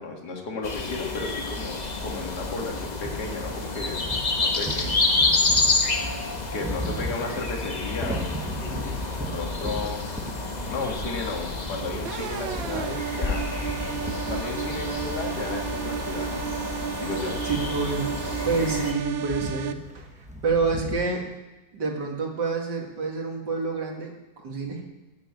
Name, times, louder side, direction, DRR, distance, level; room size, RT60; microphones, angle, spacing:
voice 1, 0.0-4.0 4.4-4.9 5.9-10.0 10.7-13.5 14.3-16.5 17.0-17.4, left 3 dB, 55° left, 1 dB, 2.4 m, -34 dB
sound 1, 0.6-18.9, left 3 dB, 25° left, 1.1 m, -29 dB
sound 2, 3.0-21.1, equal, 5° right, 0.8 m, -38 dB
sound 3, 12.1-19.7, right 9 dB, 85° right, 1.5 m, -33 dB
voice 2, 17.5-18.1 18.4-20.1 20.4-21.3 21.7-24.8, right 4 dB, 60° right, 1 dB, 2.6 m, -28 dB
15.5 x 6.8 x 8.7 m, 1.1 s
omnidirectional pair, 2.1 m